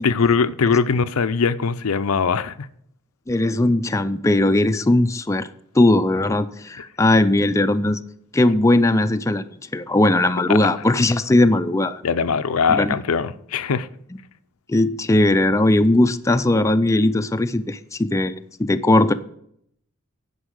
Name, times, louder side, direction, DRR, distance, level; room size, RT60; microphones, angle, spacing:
voice 1, 0.0-2.7 10.5-10.6 12.0-13.9, left 5 dB, 85° left, 0.5 m, -21 dB
voice 2, 3.3-5.5 5.7-8.0 8.3-12.0 12.7-12.9 14.7-19.1, left 2 dB, 15° left, 0.4 m, -18 dB
9.8 x 5.3 x 6.4 m
head